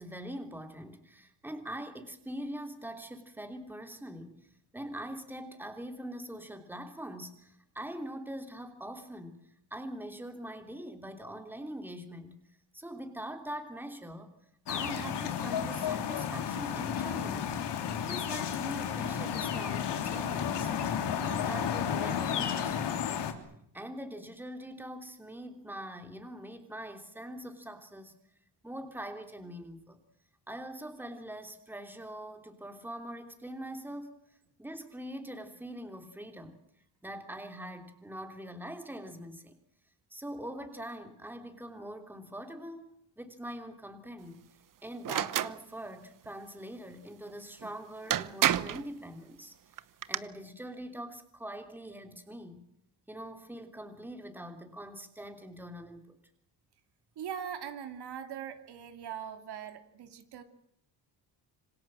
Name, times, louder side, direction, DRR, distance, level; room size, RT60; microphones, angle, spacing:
voice 1, 0.0-4.5 4.7-9.4 9.7-12.4 12.7-14.3 14.7-17.5 18.1-20.7 21.1-23.3 23.7-28.1 28.6-30.0 30.5-34.2 34.6-36.6 37.0-39.6 40.1-44.5 44.8-49.5 50.1-52.6 53.1-56.2, right 1 dB, 5° right, 6 dB, 3.0 m, -43 dB
sound 1, 14.7-23.3, left 8 dB, 75° left, 3.4 m, -32 dB
sound 2, 45.0-45.6 47.6-47.7 48.1-48.8 49.8-50.2, right 11 dB, 50° right, 1.0 m, -28 dB
voice 2, 57.2-60.4, right 8 dB, 65° right, 7 dB, 2.9 m, -41 dB
27.0 x 25.5 x 7.6 m, 0.73 s
cardioid pair, 145°, 42 cm